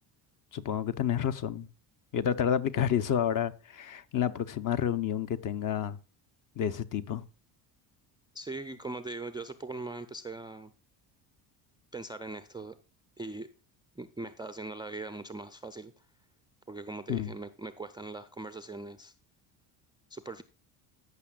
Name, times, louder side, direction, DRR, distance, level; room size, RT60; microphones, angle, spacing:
voice 1, 0.5-1.7 2.1-6.0 6.6-7.2 17.1-17.3, left 9 dB, 45° left, 0.7 m, -29 dB
voice 2, 8.3-10.7 11.9-12.8 13.2-13.5 14.0-15.9 16.7-19.1 20.1-20.4, right 2 dB, 10° right, 0.3 m, -40 dB
14.5 x 5.9 x 2.4 m
cardioid pair, 105°, 45 cm